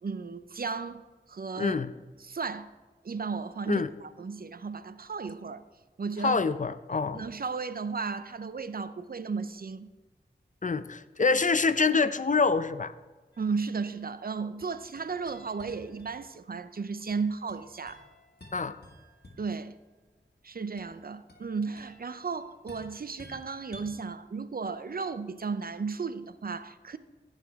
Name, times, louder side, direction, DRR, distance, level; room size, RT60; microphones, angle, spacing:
voice 1, 0.0-1.0 1.3-1.8 2.2-2.7 3.0-5.6 6.0-6.4 7.1-9.9 11.2-11.3 13.4-18.0 19.4-19.8 20.4-27.0, right 5 dB, 55° right, 0.5 m, -34 dB
voice 2, 1.6-1.9 3.7-3.9 6.2-7.2 10.6-12.9 18.5-18.7, left 4 dB, 45° left, 0.5 m, -26 dB
sound 1, 13.3-14.2 14.6-16.6 17.1-19.7 20.8-23.9, equal, 65° left, 2.0 m, -53 dB
15.5 x 5.7 x 3.5 m
wide cardioid pair, 50°, 18 cm